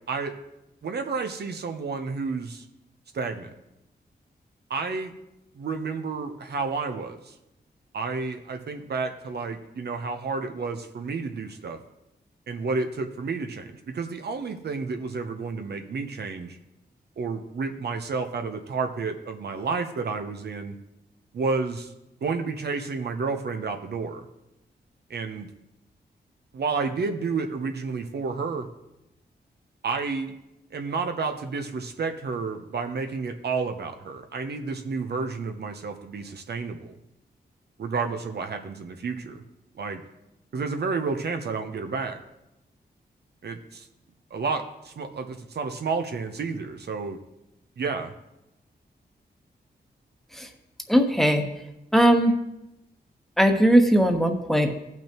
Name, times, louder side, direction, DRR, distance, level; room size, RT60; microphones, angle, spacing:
voice 1, 0.1-0.4 0.8-2.6 3.1-3.5 4.7-5.1 5.5-7.3 7.9-11.8 12.5-16.6 17.2-20.8 21.3-21.9 22.2-24.3 25.1-25.5 26.5-28.7 29.8-30.4 30.7-37.0 37.8-39.4 39.8-40.0 40.5-42.2 43.4-43.9 44.3-47.2 47.8-48.1, right 4 dB, 70° right, 6 dB, 0.9 m, -30 dB
voice 2, 50.9-51.5 51.9-52.3 53.4-54.8, equal, ahead, 4 dB, 1.2 m, -19 dB
16.5 x 6.0 x 3.0 m, 0.90 s
cardioid pair, 80°, 18 cm